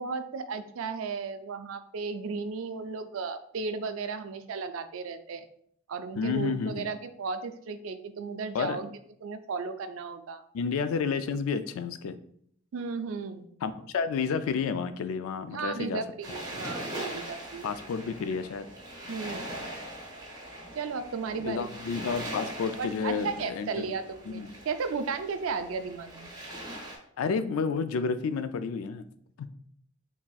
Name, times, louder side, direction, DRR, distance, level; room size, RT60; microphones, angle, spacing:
voice 1, 0.0-5.5 5.9-8.9 9.2-10.4 12.7-13.5 15.5-17.7 19.1-19.7 20.7-21.7 22.8-26.3, right 5 dB, 70° right, 10 dB, 0.4 m, -35 dB
voice 2, 6.2-6.9 8.5-8.8 10.5-12.2 13.6-16.0 17.6-18.7 21.4-23.9 24.3-24.5 27.2-29.1 29.4-29.5, left 5 dB, 80° left, 11 dB, 0.3 m, -30 dB
sound 1, 16.2-27.0, right 1 dB, 20° right, 1.2 m, -41 dB
4.0 x 3.5 x 2.3 m, 0.66 s
head